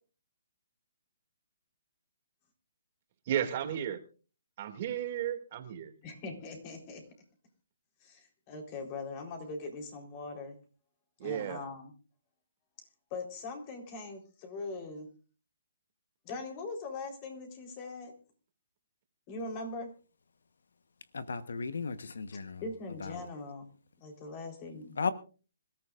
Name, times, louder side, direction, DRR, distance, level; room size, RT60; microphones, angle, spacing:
voice 1, 3.3-4.0 4.6-5.9 11.2-11.6, right 10 dB, 40° right, 2.4 m, -33 dB
voice 2, 6.0-7.0 8.0-10.6 11.2-11.9 13.1-15.1 16.2-18.1 19.3-19.9 22.6-23.7 24.0-25.1, left 3 dB, 30° left, 4.0 m, -41 dB
voice 3, 21.1-22.6 23.0-23.2 25.0-25.1, left 5 dB, 80° left, 1.2 m, -35 dB
26.0 x 14.0 x 2.6 m
hypercardioid pair, 160°, 0 cm